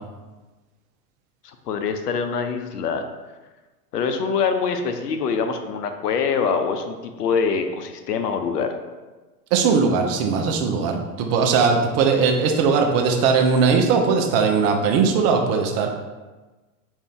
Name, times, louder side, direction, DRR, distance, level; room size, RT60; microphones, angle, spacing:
voice 1, 1.4-3.0 3.9-8.7, left 5 dB, 75° left, 7 dB, 0.7 m, -24 dB
voice 2, 9.5-15.9, right 5 dB, 35° right, 3 dB, 0.6 m, -19 dB
5.0 x 2.7 x 3.6 m, 1.2 s
hypercardioid pair, 95°, 47 cm